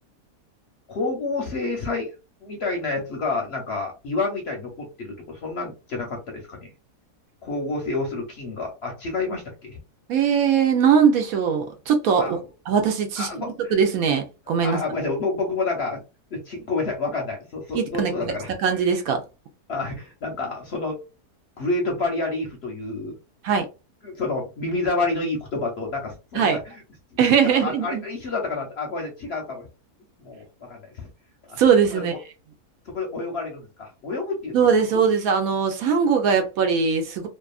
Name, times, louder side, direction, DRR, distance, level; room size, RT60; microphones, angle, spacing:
voice 1, 0.9-2.1 2.4-6.6 7.4-9.8 12.2-12.3 13.2-13.7 14.6-16.0 16.3-18.8 19.7-21.0 21.6-23.2 24.0-26.7 27.6-29.6 30.2-31.1 31.5-31.6 31.9-32.0 32.9-34.6, left 3 dB, 55° left, 0.8 m, -29 dB
voice 2, 10.1-12.4 12.7-14.8 17.7-18.3 18.6-19.2 23.4-23.7 26.3-26.6 27.2-28.0 31.6-32.1 34.5-37.3, right 6 dB, 70° right, 1.0 m, -20 dB
2.7 x 2.4 x 2.3 m
omnidirectional pair, 1.6 m